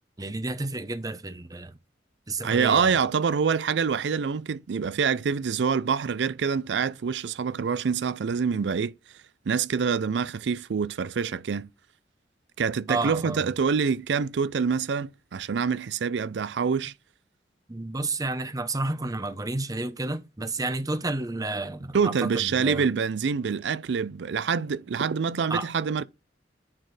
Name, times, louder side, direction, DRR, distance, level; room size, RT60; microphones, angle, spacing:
voice 1, 0.2-1.8 2.3-3.0 12.9-13.5 17.7-22.9 25.5-25.7, right 2 dB, 20° right, 0.8 m, -31 dB
voice 2, 2.4-8.9 9.5-11.7 12.6-16.9 21.9-26.0, right 6 dB, 85° right, 0.4 m, -26 dB
9.7 x 4.4 x 3.2 m
head